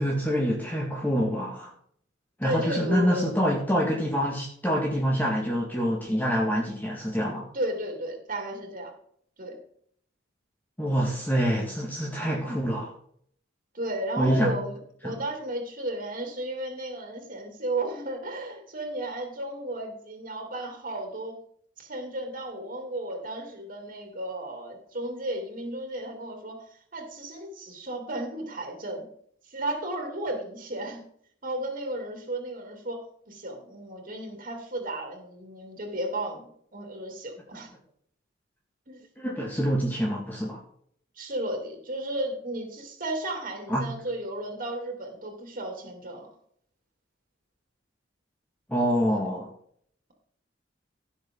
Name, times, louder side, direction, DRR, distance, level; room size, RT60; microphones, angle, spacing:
voice 1, 0.0-1.7 2.4-7.5 10.8-12.9 14.2-14.5 15.0-15.2 39.2-40.6 43.7-43.9 48.7-49.5, equal, 10° left, -2 dB, 2.0 m, -26 dB
voice 2, 2.4-3.3 7.5-8.9 9.4-9.6 13.7-21.4 21.8-26.6 26.9-29.1 29.4-31.0 31.4-37.7 38.9-39.0 41.2-46.3 49.1-49.2, right 1 dB, 45° right, 3 dB, 3.2 m, -34 dB
16.5 x 7.2 x 3.9 m, 0.62 s
head